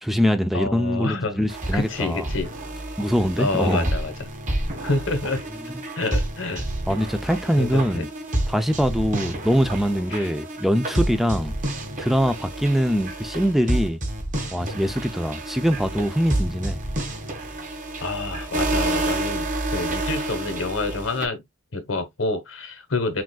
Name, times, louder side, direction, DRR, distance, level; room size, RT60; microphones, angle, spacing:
voice 1, 0.0-2.2 3.0-3.9 6.9-8.1 8.5-11.5 12.0-14.0 14.5-16.8, equal, ahead, 0.3 m, -23 dB
voice 2, 0.5-1.4 1.7-2.5 3.4-4.3 4.8-5.4 5.9-6.7 7.6-8.0 10.1-10.3 18.0-21.4 21.7-23.2, left 3 dB, 80° left, 1.2 m, -27 dB
sound 1, 1.5-21.3, right 1 dB, 40° right, 1.3 m, -29 dB
6.0 x 2.5 x 2.3 m
head